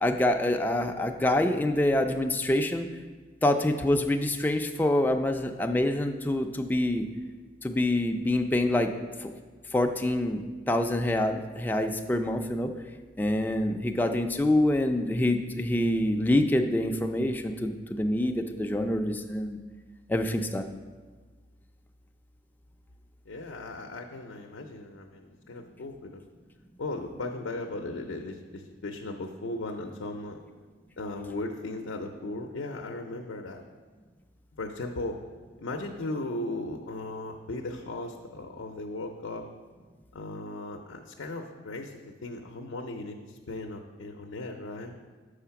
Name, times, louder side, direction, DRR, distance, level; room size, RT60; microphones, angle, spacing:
voice 1, 0.0-2.9 3.4-7.1 7.6-8.9 9.2-9.3 9.7-12.7 13.2-19.6 20.1-20.7, left 1 dB, 10° left, 4 dB, 0.3 m, -26 dB
voice 2, 23.3-26.2 26.8-30.4 31.0-33.6 34.5-35.2 35.6-39.4 40.1-45.0, left 2 dB, 85° left, 3 dB, 0.5 m, -37 dB
6.4 x 4.9 x 5.7 m, 1.4 s
head